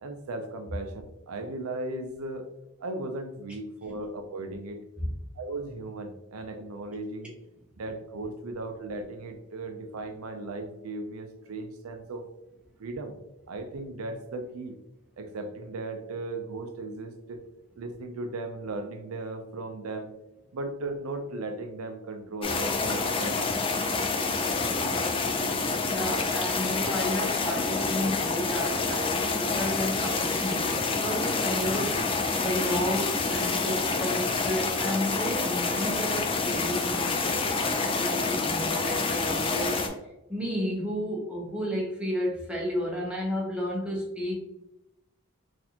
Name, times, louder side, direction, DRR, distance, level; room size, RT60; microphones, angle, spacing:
voice 1, 0.0-2.5 2.8-4.8 5.4-7.3 7.8-12.3 12.8-13.2 13.5-14.8 15.2-17.4 17.8-20.1 20.5-23.5, right 2 dB, 80° right, 6 dB, 0.4 m, -36 dB
sound 1, 22.4-39.9, left 4 dB, 25° left, 0.3 m, -28 dB
voice 2, 25.9-32.0 32.4-39.9 40.3-44.4, equal, 5° right, -3 dB, 0.7 m, -32 dB
4.0 x 2.5 x 2.8 m, 0.90 s
head